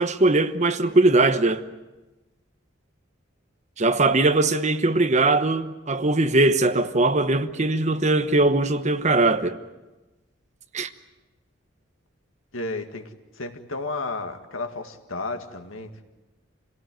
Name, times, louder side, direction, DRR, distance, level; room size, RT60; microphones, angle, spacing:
voice 1, 0.0-1.6 3.8-9.6 10.7-10.9, right 2 dB, 35° right, 1.0 m, -20 dB
voice 2, 12.5-13.0 13.3-16.0, left 3 dB, 85° left, 2.0 m, -32 dB
27.0 x 17.5 x 9.1 m
head